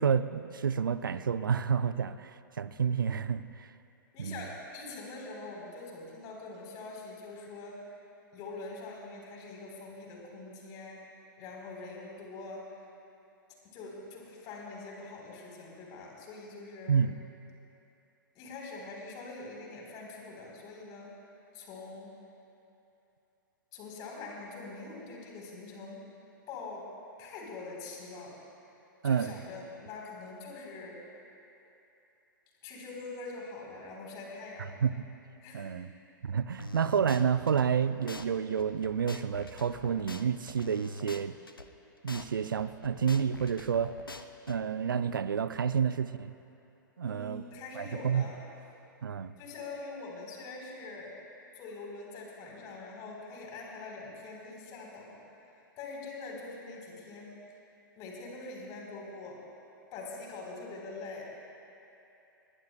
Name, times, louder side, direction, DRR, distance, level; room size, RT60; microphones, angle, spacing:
voice 1, 0.0-3.7 4.2-4.4 16.9-17.2 29.0-29.3 34.8-34.9 35.5-35.9 36.2-41.4 42.0-43.9 44.5-46.3 47.0-47.4 47.8-48.3 49.0-49.3, right 7 dB, 70° right, 14 dB, 0.5 m, -29 dB
voice 2, 4.1-8.0 8.3-11.0 11.4-12.9 13.6-17.0 18.3-21.1 21.5-22.1 23.7-26.0 26.5-26.8 27.2-28.4 29.0-31.0 32.6-34.7 35.4-35.8 47.0-48.4 49.4-51.2 51.5-55.2 55.5-57.3 58.0-59.4 59.9-61.3, left 3 dB, 35° left, -2 dB, 3.7 m, -44 dB
sound 1, 36.6-37.7 38.1-38.3 38.6-41.7 42.1-42.3 42.6-44.6, left 2 dB, 85° left, 0.7 m, -44 dB
20.5 x 20.0 x 2.2 m, 2.9 s
figure-of-eight pair, 105°, 11 cm